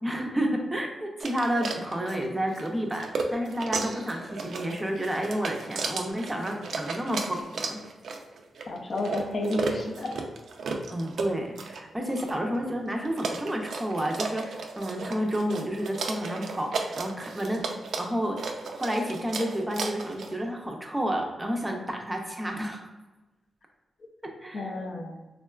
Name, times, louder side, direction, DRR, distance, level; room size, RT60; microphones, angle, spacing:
voice 1, 0.0-7.8 10.9-17.6 18.0-18.4 18.7-22.9 24.2-24.7, equal, 10° right, 1 dB, 0.5 m, -30 dB
sound 1, 1.2-20.4, right 4 dB, 80° right, 0.3 m, -35 dB
voice 2, 8.7-10.1 24.5-25.2, left 2 dB, 55° left, 2 dB, 0.4 m, -31 dB
3.6 x 2.2 x 2.3 m, 1.1 s
cardioid pair, 90°, 0 cm